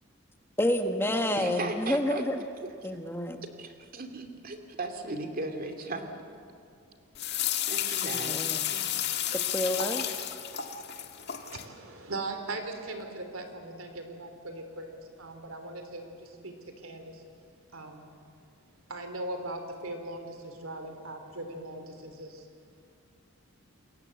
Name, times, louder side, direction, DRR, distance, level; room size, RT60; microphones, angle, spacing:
voice 1, 0.6-2.4 2.8-3.4 8.0-8.7 9.2-10.1, left 1 dB, 10° left, 6 dB, 1.2 m, -29 dB
voice 2, 1.4-2.2 3.6-6.1 7.7-8.9, right 2 dB, 45° right, 5 dB, 2.5 m, -37 dB
sound 1, 7.2-11.6, left 10 dB, 55° left, 1.7 m, -32 dB
voice 3, 11.5-17.2 17.7-18.1 18.9-22.5, right 2 dB, 80° right, 6 dB, 3.4 m, -39 dB
28.0 x 22.0 x 8.2 m, 2.4 s
head